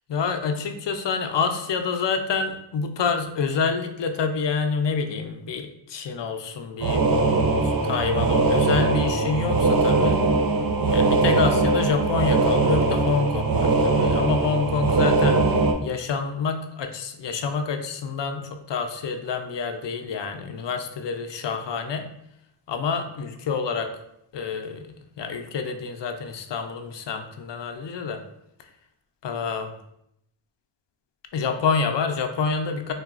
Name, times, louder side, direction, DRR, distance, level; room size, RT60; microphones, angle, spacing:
voice 1, 0.1-7.1 7.6-10.2 10.9-15.5 15.8-22.1 22.7-23.9 24.3-24.9 25.2-28.2 29.2-29.7 31.3-32.9, left 5 dB, 60° left, 6 dB, 0.5 m, -27 dB
sound 1, 6.8-15.7, right 3 dB, 50° right, 0.5 m, -21 dB
3.8 x 2.2 x 2.4 m, 0.78 s
cardioid pair, 50°, 48 cm